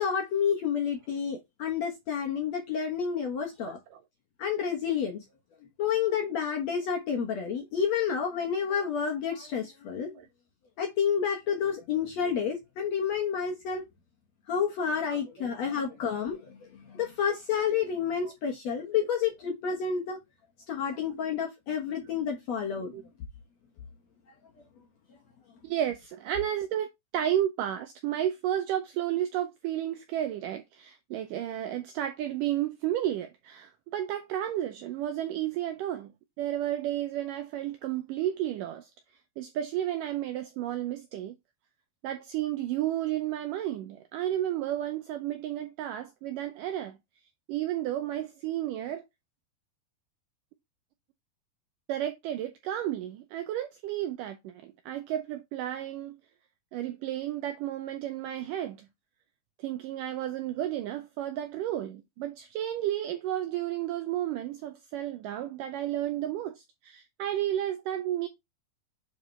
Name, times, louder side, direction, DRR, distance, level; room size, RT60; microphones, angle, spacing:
voice 1, 0.0-3.8 4.4-5.2 5.8-10.2 10.8-13.8 14.5-20.2 20.7-22.9, left 7 dB, 65° left, 1.8 m, -30 dB
voice 2, 3.6-4.0 10.2-10.3 15.1-15.2 18.2-18.3 21.1-21.2 22.9-23.0 25.6-26.9 27.1-36.1 36.4-38.9 39.4-41.4 42.0-47.0 47.5-49.0 51.9-56.2 56.7-58.9 59.6-68.3, right 12 dB, 85° right, 1.9 m, -32 dB
8.9 x 4.0 x 3.2 m
omnidirectional pair, 4.5 m